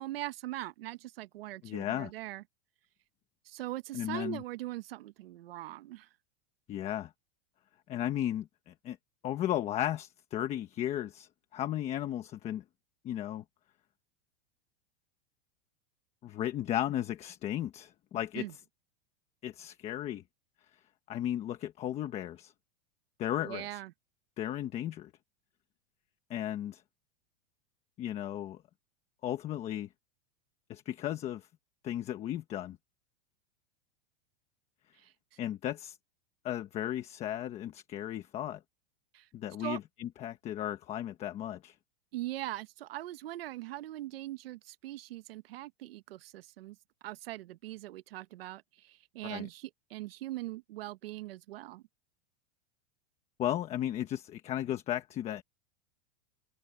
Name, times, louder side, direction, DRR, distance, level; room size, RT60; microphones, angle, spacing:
voice 1, 0.0-2.4 3.4-6.1 18.3-18.5 23.4-23.9 35.0-35.4 39.1-39.3 39.6-39.8 42.1-46.8 47.0-51.8, right 16 dB, 70° right, 1.3 m, -41 dB
voice 2, 1.6-2.1 3.9-4.4 6.7-7.1 7.9-9.0 9.2-12.6 13.0-13.4 16.2-18.5 19.4-20.2 21.1-22.5 23.2-23.8 24.4-25.1 26.3-26.8 28.0-28.6 29.2-29.9 30.7-31.5 31.8-32.8 35.4-36.0 36.4-38.6 39.3-41.7 49.2-49.5 53.4-55.4, left 12 dB, 20° left, 1.2 m, -35 dB
supercardioid pair, 170°, 30 cm